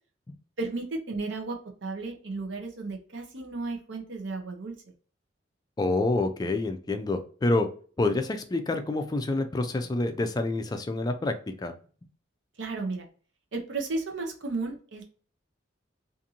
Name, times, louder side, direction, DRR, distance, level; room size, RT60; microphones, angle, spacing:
voice 1, 0.6-4.7 12.6-13.1 13.5-15.0, right 3 dB, 70° right, 3 dB, 0.7 m, -34 dB
voice 2, 5.8-7.7 8.0-11.7, left 2 dB, 20° left, 6 dB, 0.3 m, -27 dB
2.6 x 2.5 x 2.7 m, 0.40 s
head